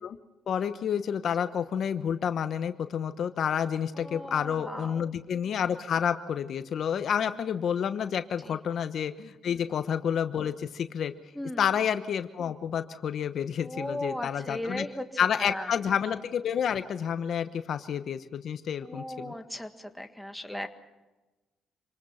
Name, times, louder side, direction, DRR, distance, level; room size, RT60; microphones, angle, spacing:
voice 1, 0.5-11.1 11.6-14.9 15.2-19.3, left 8 dB, 60° left, 10 dB, 1.0 m, -29 dB
voice 2, 4.0-5.0 8.5-8.6 9.5-9.6 11.4-11.6 13.6-15.0 15.4-15.7 18.8-20.7, left 1 dB, ahead, 6 dB, 1.8 m, -37 dB
27.0 x 19.5 x 5.7 m, 1.1 s
cardioid pair, 90°, 0 cm